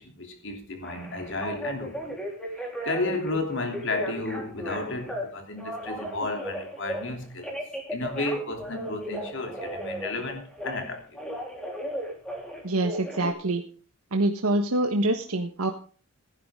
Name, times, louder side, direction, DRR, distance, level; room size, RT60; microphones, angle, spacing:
voice 1, 0.0-2.2 2.8-7.6 7.9-11.2, left 2 dB, 55° left, 3.2 m, -32 dB
Telephone, 0.8-3.4 3.7-5.2 5.6-7.1 7.4-10.9 11.1-13.3, equal, 5° left, 3.8 m, -35 dB
voice 2, 12.6-13.6 14.1-15.7, right 2 dB, 85° right, 1.3 m, -25 dB
18.0 x 11.0 x 3.7 m
head